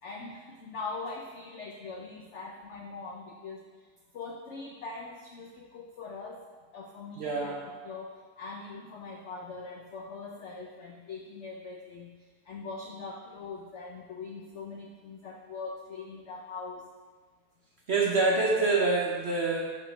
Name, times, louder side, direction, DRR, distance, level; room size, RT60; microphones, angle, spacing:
voice 1, 0.0-7.6 7.8-16.8, left 4 dB, 75° left, 0 dB, 0.6 m, -42 dB
voice 2, 7.2-7.6 17.9-19.6, right 3 dB, 55° right, -3 dB, 0.7 m, -26 dB
6.5 x 3.1 x 5.0 m, 1.4 s
omnidirectional pair, 1.8 m